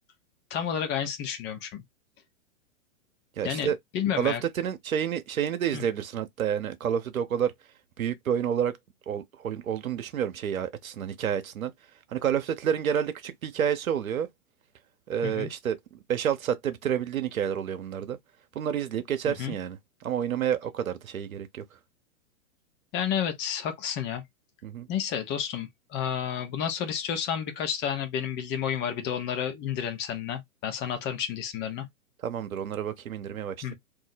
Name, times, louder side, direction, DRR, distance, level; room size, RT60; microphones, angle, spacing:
voice 1, 0.5-1.8 3.4-4.4 5.7-5.8 15.2-15.5 19.2-19.5 22.9-24.2 24.9-31.9 33.6-33.7, left 8 dB, 25° left, 0.8 m, -31 dB
voice 2, 3.4-3.8 4.2-7.5 8.0-8.8 9.1-11.7 12.1-14.3 15.1-18.2 18.5-21.6 24.6-24.9 32.2-33.7, right 9 dB, 85° right, 0.8 m, -29 dB
2.6 x 2.1 x 4.0 m
hypercardioid pair, 125°, 41 cm